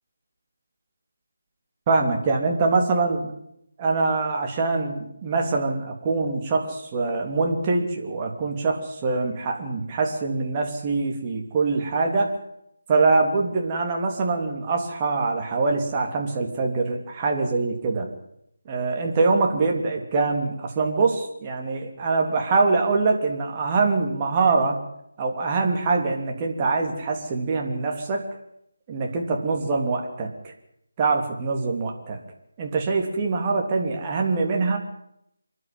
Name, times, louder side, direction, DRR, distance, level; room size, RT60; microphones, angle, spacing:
voice 1, 1.9-3.3 3.8-12.3 12.9-18.1 18.7-24.8 25.2-28.2 28.9-30.5 31.0-32.2 32.6-34.8, right 3 dB, 20° right, 1 dB, 3.2 m, -24 dB
27.0 x 11.5 x 9.5 m, 0.77 s
figure-of-eight pair, 155°, 0 cm